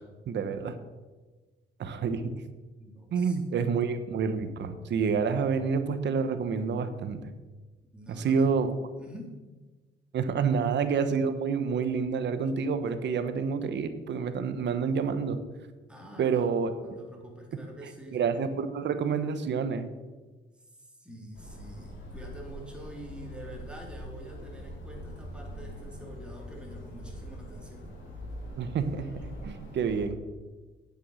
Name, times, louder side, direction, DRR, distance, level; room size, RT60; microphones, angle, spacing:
voice 1, 0.3-0.8 1.8-2.3 3.1-7.3 8.1-8.7 10.1-15.4 16.2-16.7 18.1-19.9 28.6-29.1 29.4-30.2, right 6 dB, 65° right, 10 dB, 1.1 m, -28 dB
voice 2, 2.8-3.4 7.9-8.5 9.0-9.3 10.3-10.5 15.9-16.5 16.8-18.2 20.7-27.8, right 1 dB, 5° right, -1 dB, 3.2 m, -46 dB
sound 1, 21.3-30.1, equal, 70° left, 4.0 m, -43 dB
9.0 x 8.2 x 6.4 m, 1.3 s
cardioid pair, 90°, 20 cm